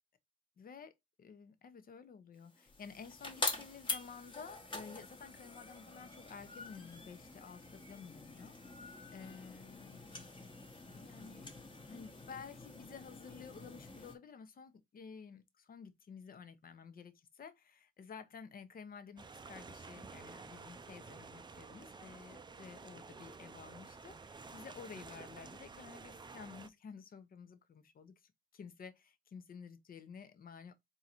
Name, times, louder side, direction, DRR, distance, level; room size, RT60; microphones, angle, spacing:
voice 1, 0.6-0.9 1.2-10.1 10.9-30.7, left 6 dB, 45° left, 0.9 m, -52 dB
sound 1, 2.5-14.2, left 3 dB, 25° left, 1.1 m, -45 dB
sound 2, 19.2-26.7, right 4 dB, 20° right, 0.5 m, -51 dB
3.7 x 2.8 x 4.4 m
cardioid pair, 90°, 20 cm